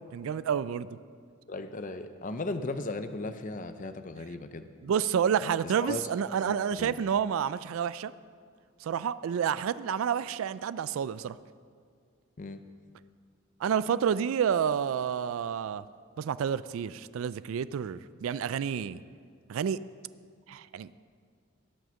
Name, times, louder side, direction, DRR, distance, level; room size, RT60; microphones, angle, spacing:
voice 1, 0.1-0.9 4.8-8.1 8.8-11.4 13.6-15.8 16.2-19.0 19.5-19.8 20.5-20.9, right 8 dB, 75° right, 16 dB, 0.3 m, -29 dB
voice 2, 1.5-4.6 5.6-6.0 6.5-7.0 12.4-12.6, left 2 dB, 40° left, 10 dB, 0.5 m, -36 dB
17.0 x 6.4 x 7.0 m, 2.1 s
head